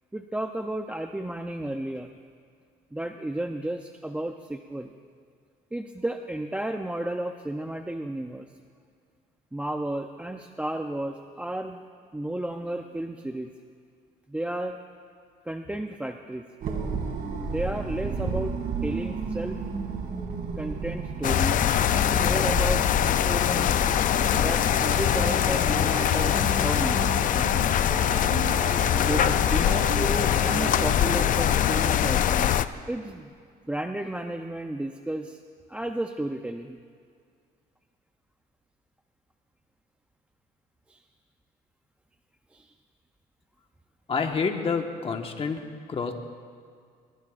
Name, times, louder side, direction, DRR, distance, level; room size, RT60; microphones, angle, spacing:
voice 1, 0.1-2.1 2.9-4.9 5.7-8.5 9.5-11.8 12.1-13.5 14.3-14.8 15.4-16.4 17.4-18.6 18.8-19.6 20.6-21.6 21.9-23.8 24.3-27.2 28.9-33.3 33.6-35.4 35.7-36.8 40.9-41.0 42.5-42.7, right 1 dB, 5° right, 5 dB, 0.6 m, -33 dB
sound 1, 16.6-24.2, right 5 dB, 60° right, 2.5 m, -32 dB
sound 2, 21.2-32.7, left 10 dB, 50° left, 0.5 m, -23 dB
sound 3, 24.2-33.2, right 5 dB, 45° right, 1.3 m, -36 dB
voice 2, 44.1-46.1, left 5 dB, 35° left, 3 dB, 1.5 m, -28 dB
22.5 x 21.5 x 2.6 m, 2.2 s
cardioid pair, 110°, 17 cm